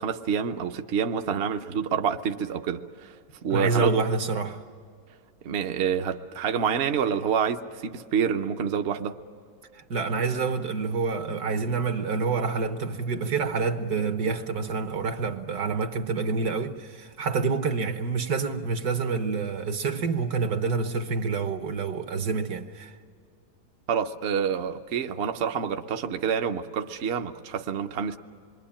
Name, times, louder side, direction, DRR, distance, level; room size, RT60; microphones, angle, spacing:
voice 1, 0.0-3.2 3.4-4.0 5.4-9.2 23.9-28.2, right 7 dB, 50° right, 0.9 m, -27 dB
voice 2, 3.5-4.6 9.7-22.9, right 4 dB, 65° right, 1.7 m, -27 dB
27.5 x 22.5 x 8.7 m
omnidirectional pair, 1.8 m